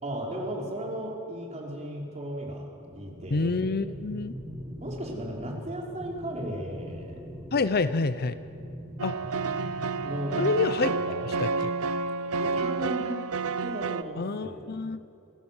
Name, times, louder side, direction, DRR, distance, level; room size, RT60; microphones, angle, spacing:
voice 1, 0.0-2.7 3.0-3.5 4.8-7.2 10.0-10.5 10.8-11.3 12.3-13.2 13.6-14.6, equal, 30° right, -1 dB, 4.1 m, -35 dB
sound 1, 2.8-10.8, equal, 10° right, 3.9 m, -42 dB
voice 2, 3.3-4.3 7.5-8.4 9.0-9.1 10.4-11.0 11.4-11.7 14.2-15.0, left 3 dB, 45° left, 13 dB, 0.6 m, -27 dB
sound 2, 9.0-14.0, right 4 dB, 70° right, 0.7 m, -30 dB
28.0 x 16.5 x 7.2 m, 2.6 s
head